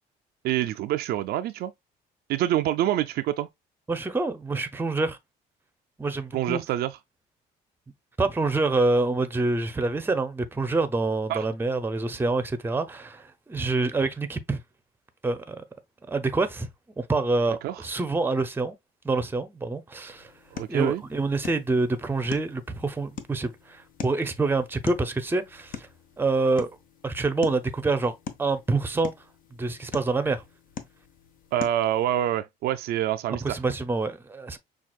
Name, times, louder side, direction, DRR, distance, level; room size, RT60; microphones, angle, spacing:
voice 1, 0.4-1.7 2.3-3.5 6.3-6.9 11.3-11.5 17.6-17.8 20.5-21.0 31.5-33.6, right 12 dB, 70° right, 0.4 m, -26 dB
voice 2, 3.9-5.2 6.0-6.6 8.2-14.6 15.2-15.6 16.1-16.7 17.0-18.7 19.0-20.3 20.7-25.9 26.2-26.7 27.0-29.1 29.6-30.4 33.3-34.6, right 3 dB, 10° right, 0.6 m, -26 dB
sound 1, 20.1-32.1, left 7 dB, 55° left, 0.8 m, -43 dB
5.8 x 2.4 x 2.3 m
cardioid pair, 110°, 17 cm